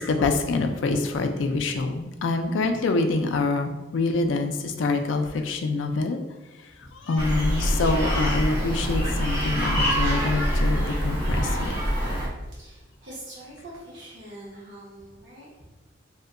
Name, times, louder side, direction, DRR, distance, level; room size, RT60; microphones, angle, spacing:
voice 1, 0.0-6.2 7.1-11.7, left 3 dB, 80° left, 6 dB, 0.4 m, -25 dB
sound 1, 7.2-12.3, equal, 30° right, 1.0 m, -25 dB
voice 2, 12.5-15.7, right 1 dB, 75° right, -6 dB, 1.0 m, -44 dB
2.7 x 2.2 x 3.6 m, 1.1 s
head